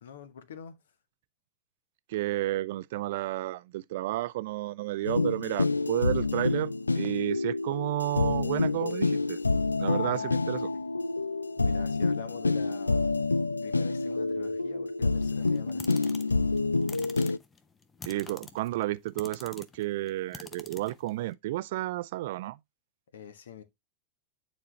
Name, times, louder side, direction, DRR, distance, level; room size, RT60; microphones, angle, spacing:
voice 1, 0.0-0.8 10.0-10.4 11.6-13.1 13.6-15.8 23.1-23.6, left 7 dB, 65° left, 1.2 m, -44 dB
voice 2, 2.1-9.4 9.8-10.7 18.0-22.6, right 16 dB, 55° right, 0.4 m, -32 dB
sound 1, 5.0-17.4, left 3 dB, 80° left, 0.3 m, -28 dB
sound 2, 15.2-21.3, left 4 dB, 15° left, 0.8 m, -47 dB
9.1 x 4.3 x 3.1 m
figure-of-eight pair, 90°, 0 cm